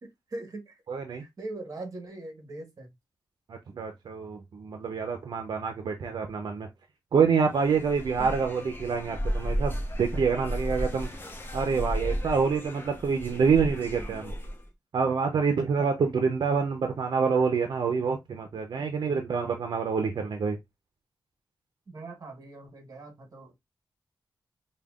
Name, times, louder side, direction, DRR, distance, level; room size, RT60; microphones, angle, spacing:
voice 1, 0.0-0.8 1.2-2.9 8.2-8.3 14.0-14.2 15.8-16.1 21.9-23.6, right 2 dB, 50° right, 1.1 m, -42 dB
voice 2, 0.9-1.2 3.5-6.7 7.1-11.1 11.5-14.3 14.9-20.6, right 5 dB, 75° right, 0.5 m, -27 dB
sound 1, 7.5-14.7, equal, 30° left, 0.7 m, -34 dB
5.1 x 2.2 x 2.3 m
wide cardioid pair, 145°, 8 cm